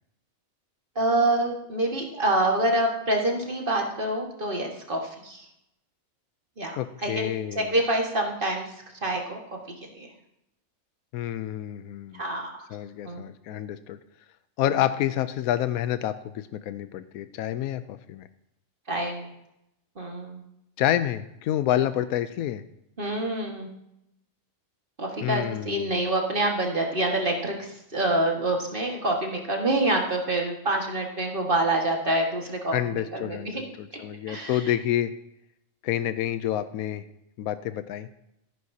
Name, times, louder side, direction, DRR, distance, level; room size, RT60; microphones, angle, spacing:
voice 1, 1.0-5.5 6.6-8.7 9.0-9.4 9.9-10.1 12.1-12.5 13.0-13.2 18.9-19.3 20.0-20.4 23.0-23.7 25.0-33.7 33.9-34.0 34.3-34.6, right 1 dB, 40° right, 1 dB, 1.9 m, -26 dB
voice 2, 6.8-7.7 11.1-12.2 12.7-14.0 14.6-18.3 20.8-22.6 25.2-26.0 32.7-35.1 35.8-37.0 37.4-38.1, left 12 dB, 85° left, 12 dB, 1.0 m, -28 dB
14.0 x 11.0 x 2.8 m, 0.82 s
omnidirectional pair, 1.5 m